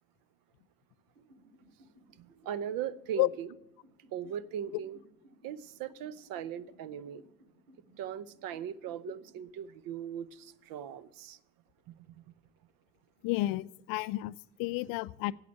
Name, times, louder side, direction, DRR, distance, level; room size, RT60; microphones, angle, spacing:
sound 1, 1.2-11.3 11.7-13.3, right 2 dB, 80° right, 5.5 m, -61 dB
voice 1, 2.2-3.5 4.1-5.0 5.4-7.2 8.0-11.4 11.9-12.2, right 9 dB, 55° right, 0.7 m, -39 dB
voice 2, 13.2-15.3, left 19 dB, 55° left, 0.5 m, -31 dB
8.5 x 8.0 x 8.1 m
hypercardioid pair, 70°, 42 cm